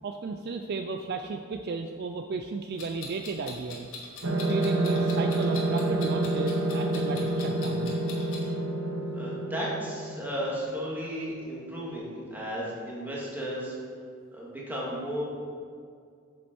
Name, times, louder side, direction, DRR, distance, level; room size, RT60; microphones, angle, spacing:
voice 1, 0.0-3.9 4.5-7.9, right 4 dB, 50° right, 6 dB, 0.3 m, -34 dB
Clock, 2.8-8.4, left 4 dB, 75° left, 1.8 m, -42 dB
sound 1, 4.2-10.5, right 2 dB, 70° right, 0.9 m, -28 dB
voice 2, 9.1-13.7 14.3-15.2, equal, 10° right, -6 dB, 1.8 m, -34 dB
7.6 x 7.4 x 4.4 m, 2.2 s
head